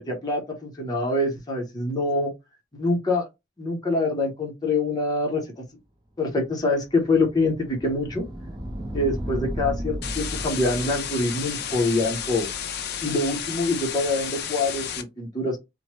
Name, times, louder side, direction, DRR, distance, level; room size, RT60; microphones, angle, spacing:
voice 1, 0.0-2.3 2.7-3.3 3.6-5.6 6.2-8.2 8.9-12.5 13.0-15.6, left 2 dB, 20° left, 0.7 m, -25 dB
sound 1, 6.5-13.3, equal, 20° right, 0.7 m, -35 dB
sound 2, 10.0-15.0, left 8 dB, 55° left, 0.5 m, -32 dB
3.0 x 2.0 x 3.0 m
head